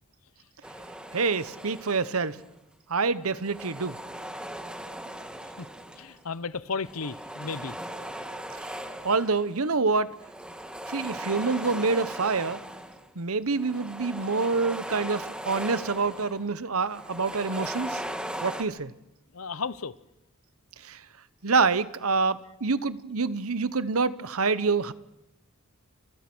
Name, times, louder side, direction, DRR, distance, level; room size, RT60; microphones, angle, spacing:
sound 1, 0.6-2.5 3.3-6.2 6.8-9.6 10.1-13.1 13.5-16.5 16.8-18.6, right 1 dB, 5° right, 1.9 m, -38 dB
voice 1, 1.1-2.4 2.9-4.0 8.5-10.1 10.9-12.6 13.1-18.0 18.4-18.9 20.8-21.0 21.4-24.9, right 4 dB, 80° right, 1.1 m, -27 dB
voice 2, 6.0-7.7 19.3-19.9, left 4 dB, 80° left, 1.0 m, -34 dB
29.5 x 27.0 x 6.3 m
head